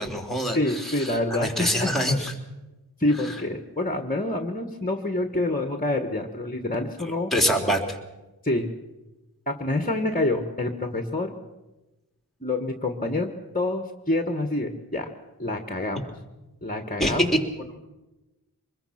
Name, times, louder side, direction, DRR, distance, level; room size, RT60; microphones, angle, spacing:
voice 1, 0.0-2.3 7.3-7.8 17.0-17.2, equal, ahead, 3 dB, 3.5 m, -25 dB
voice 2, 0.5-1.9 3.0-7.3 8.4-8.7 9.5-11.3 12.4-13.3 13.5-15.1 15.4-16.1 16.6-17.3, left 2 dB, 20° left, 7 dB, 1.5 m, -27 dB
25.0 x 21.5 x 5.9 m, 1.0 s
wide cardioid pair, 60°, 37 cm